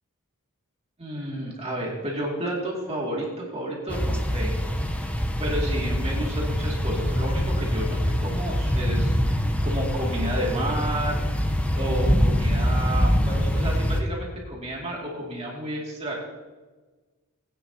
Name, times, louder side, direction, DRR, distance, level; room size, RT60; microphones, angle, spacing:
voice 1, 1.0-5.0 5.4-9.1 9.6-11.4 11.7-16.1, right 1 dB, 30° right, -3 dB, 2.5 m, -31 dB
sound 1, 3.9-14.0, equal, 5° left, 0.9 m, -24 dB
19.5 x 9.8 x 2.9 m, 1.3 s
head